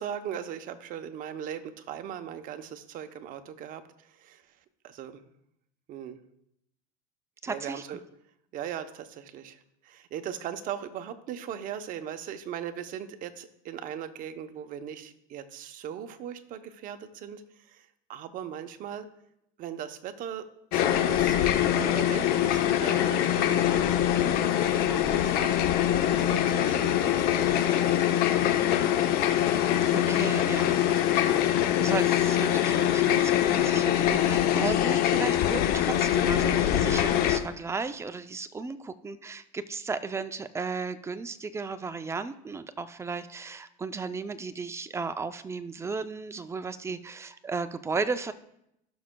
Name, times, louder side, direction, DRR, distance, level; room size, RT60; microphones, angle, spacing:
voice 1, 0.0-4.4 4.8-5.2 5.9-6.2 7.5-8.0 8.5-19.1 19.6-20.5 20.7-21.4 21.7-25.5 26.1-27.9 30.1-31.3, right 9 dB, 50° right, 8 dB, 0.8 m, -39 dB
voice 2, 7.4-7.8 28.6-29.0 29.9-30.9 31.7-48.3, right 4 dB, 15° right, 11 dB, 0.4 m, -35 dB
sound 1, 20.7-37.4, left 11 dB, 60° left, 0.7 m, -24 dB
16.5 x 6.2 x 2.2 m, 0.79 s
supercardioid pair, 120°, 18 cm